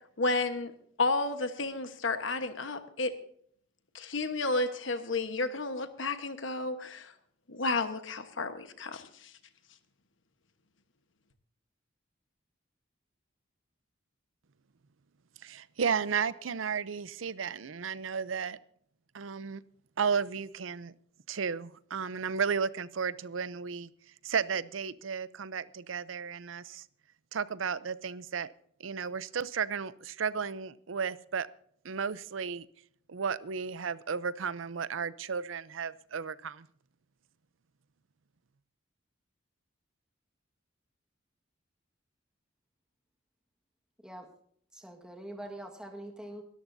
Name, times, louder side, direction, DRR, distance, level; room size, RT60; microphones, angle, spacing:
voice 1, 0.2-0.7 1.0-3.1 3.9-7.1 7.5-9.3, left 3 dB, 70° left, 8 dB, 1.2 m, -32 dB
voice 2, 15.4-18.6 19.1-19.6 20.0-20.9 21.3-23.9 24.2-26.8 27.3-28.5 28.8-31.5 31.8-32.7 33.1-36.7, right 6 dB, 85° right, 17 dB, 0.6 m, -33 dB
voice 3, 44.7-46.4, right 1 dB, 5° right, 1 dB, 1.6 m, -44 dB
23.0 x 13.0 x 2.7 m, 0.62 s
head